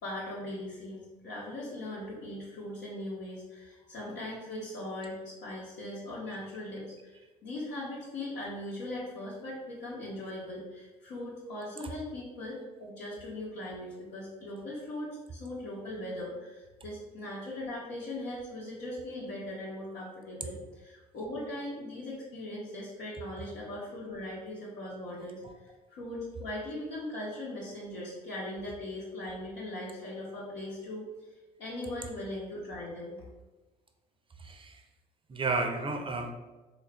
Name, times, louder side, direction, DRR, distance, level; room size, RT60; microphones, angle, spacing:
voice 1, 0.0-25.4 25.9-31.1 31.6-33.2, left 1 dB, 65° left, -9 dB, 0.9 m, -39 dB
voice 2, 34.4-34.8 35.3-36.3, right 3 dB, 25° right, 6 dB, 0.6 m, -32 dB
3.9 x 2.4 x 3.3 m, 1.1 s
hypercardioid pair, 50°, 20 cm